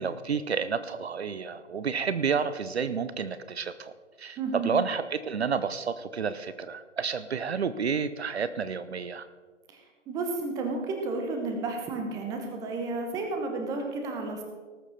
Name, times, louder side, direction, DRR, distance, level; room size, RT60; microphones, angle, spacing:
voice 1, 0.0-3.9 4.2-9.3, right 6 dB, 60° right, 13 dB, 0.7 m, -30 dB
voice 2, 4.4-4.7 9.7-14.4, right 3 dB, 10° right, 3 dB, 1.0 m, -32 dB
19.0 x 7.2 x 4.2 m, 1.4 s
figure-of-eight pair, 140°, 37 cm